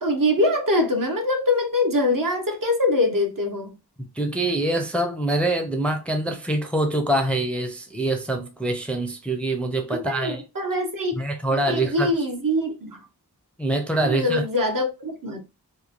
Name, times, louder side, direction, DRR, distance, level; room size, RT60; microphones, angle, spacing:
voice 1, 0.0-3.7 9.9-11.2 11.5-13.1 14.0-15.4, left 1 dB, 55° right, 0.7 m, -23 dB
voice 2, 4.0-10.4 11.1-12.1 13.6-14.4, right 1 dB, 5° left, 0.5 m, -25 dB
2.9 x 2.2 x 2.4 m
wide cardioid pair, 50°, 39 cm